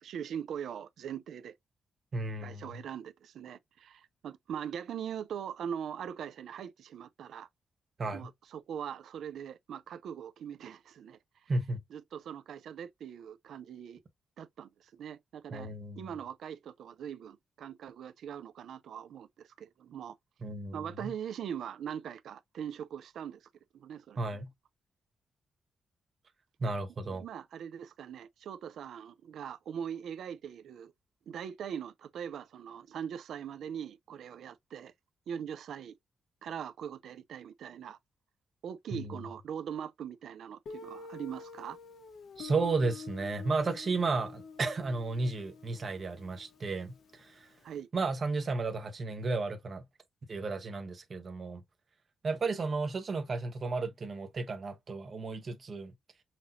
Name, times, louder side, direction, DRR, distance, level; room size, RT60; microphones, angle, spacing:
voice 1, 0.0-1.5 2.4-7.5 8.1-11.5 11.9-14.0 14.4-20.2 20.7-23.5 23.7-24.2 27.1-30.9 31.3-34.9 35.3-35.9 36.4-38.0 38.6-41.8 47.6-47.9, right 8 dB, 85° right, 0.5 m, -41 dB
voice 2, 2.1-2.8 8.0-8.3 11.5-11.8 15.5-16.1 20.4-21.1 24.2-24.5 26.6-27.2 38.9-39.2 42.4-47.5 47.9-49.8 50.3-51.6 52.2-55.9, right 3 dB, 35° right, 1.1 m, -33 dB
Guitar, 40.7-47.3, left 5 dB, 65° left, 1.1 m, -48 dB
5.8 x 3.0 x 2.7 m
wide cardioid pair, 175°, 0 cm